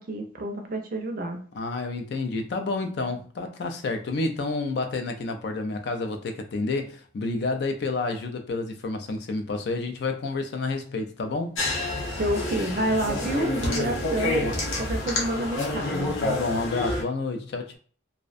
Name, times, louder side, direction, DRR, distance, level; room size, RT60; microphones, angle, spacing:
voice 1, 0.0-1.4 12.2-14.4 14.8-16.2, right 1 dB, 45° right, 0.4 m, -29 dB
voice 2, 1.5-11.6 14.4-14.5 16.2-17.8, left 3 dB, 55° left, 0.3 m, -29 dB
sound 1, 11.6-17.0, left 2 dB, 90° left, 0.8 m, -28 dB
2.5 x 2.1 x 2.4 m
head